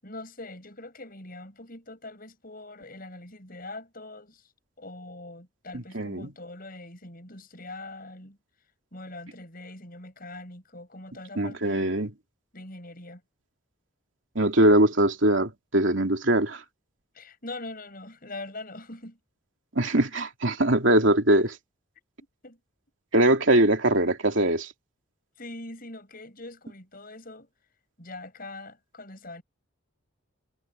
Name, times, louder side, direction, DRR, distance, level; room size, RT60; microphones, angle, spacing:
voice 1, 0.0-4.5 4.8-8.4 8.9-12.0 12.5-13.2 17.1-19.2 22.4-22.6 25.4-27.5 28.0-29.4, left 2 dB, 40° left, 7.7 m, -42 dB
voice 2, 5.9-6.3 11.4-12.1 14.3-16.6 19.7-21.6 23.1-24.7, right 1 dB, 60° right, 3.0 m, -22 dB
head